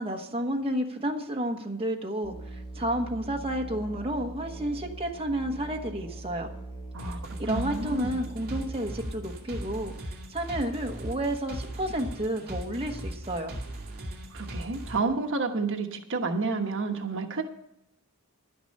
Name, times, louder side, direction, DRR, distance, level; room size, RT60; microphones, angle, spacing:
voice 1, 0.0-6.5 7.0-7.1 7.4-9.9 10.3-13.5, right 1 dB, 25° right, 2 dB, 1.3 m, -31 dB
Musical instrument, 2.2-9.0, right 2 dB, 20° left, 1.5 m, -41 dB
voice 2, 6.9-8.2 14.3-17.4, right 4 dB, 60° right, 5 dB, 1.2 m, -30 dB
sound 1, 7.0-15.0, right 1 dB, 45° right, 2.5 m, -38 dB
11.5 x 10.0 x 5.4 m, 0.78 s
head